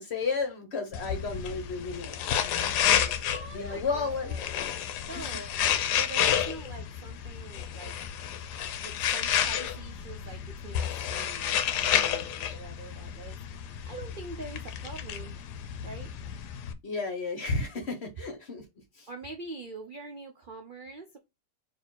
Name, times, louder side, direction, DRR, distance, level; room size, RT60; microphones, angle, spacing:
voice 1, 0.0-3.2 3.5-4.3 16.8-18.6 19.0-19.1, left 4 dB, 45° left, 0.9 m, -33 dB
sound 1, 0.9-16.7, left 9 dB, 75° left, 1.1 m, -31 dB
voice 2, 3.2-4.6 5.0-7.9 8.2-8.4 8.8-13.4 13.8-15.4 15.8-16.1 19.1-21.2, right 3 dB, 70° right, 0.5 m, -44 dB
4.2 x 2.7 x 4.4 m
omnidirectional pair, 1.8 m